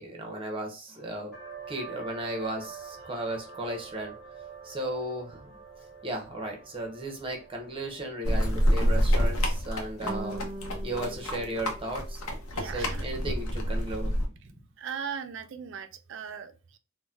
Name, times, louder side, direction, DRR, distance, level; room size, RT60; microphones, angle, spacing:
voice 1, 0.0-1.4 1.7-4.1 4.6-5.6 6.0-10.5 10.8-12.2 12.6-14.3, right 1 dB, 25° right, 2 dB, 0.7 m, -35 dB
sound 1, 1.3-12.6, right 5 dB, ahead, 1.3 m, -47 dB
sound 2, 8.2-14.3, equal, 85° left, 0.7 m, -27 dB
G open string, 10.0-12.6, right 1 dB, 25° left, 1.1 m, -41 dB
voice 2, 12.5-13.1 14.8-16.8, right 7 dB, 60° right, 9 dB, 0.4 m, -38 dB
3.9 x 2.1 x 2.3 m, 0.33 s
head